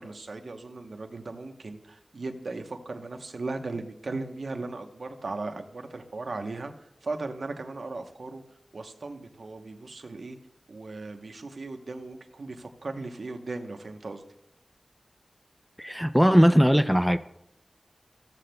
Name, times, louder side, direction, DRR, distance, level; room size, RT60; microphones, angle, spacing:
voice 1, 0.0-6.7 7.0-8.4 8.7-10.4 10.7-14.2, right 3 dB, 75° right, 5 dB, 0.9 m, -37 dB
voice 2, 15.8-17.2, equal, ahead, 10 dB, 0.4 m, -19 dB
14.5 x 7.6 x 2.2 m, 0.83 s
cardioid pair, 45°, 0 cm